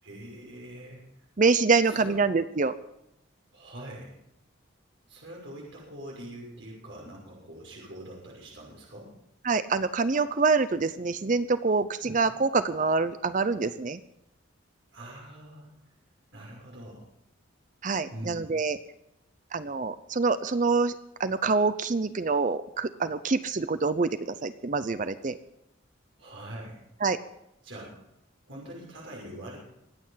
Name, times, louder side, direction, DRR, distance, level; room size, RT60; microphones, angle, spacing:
voice 1, 0.0-1.0 1.9-2.2 3.5-4.1 5.1-9.1 12.0-12.1 14.9-15.7 16.3-17.1 18.1-18.4 26.2-26.8 27.6-28.0 28.5-29.6, right 1 dB, 65° right, -3 dB, 6.1 m, -43 dB
voice 2, 1.4-2.8 9.4-14.0 17.8-18.8 19.5-20.9 21.2-25.4 27.0-27.2, right 4 dB, 40° right, 13 dB, 0.6 m, -26 dB
24.5 x 8.9 x 5.7 m, 0.83 s
head